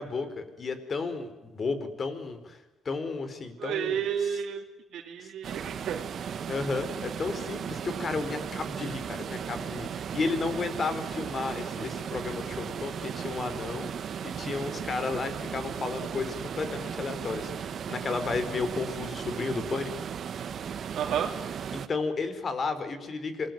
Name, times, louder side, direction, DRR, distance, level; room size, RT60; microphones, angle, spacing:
voice 1, 0.0-2.6 2.8-4.4 5.2-5.3 6.5-19.9 21.7-23.5, left 4 dB, 40° left, 11 dB, 4.5 m, -33 dB
voice 2, 3.6-4.6 4.9-6.0 20.9-21.3, right 8 dB, 75° right, 1 dB, 2.9 m, -31 dB
sound 1, 5.4-21.9, right 7 dB, 60° right, 1.7 m, -36 dB
27.5 x 21.0 x 9.4 m, 1.1 s
cardioid pair, 90°, 0 cm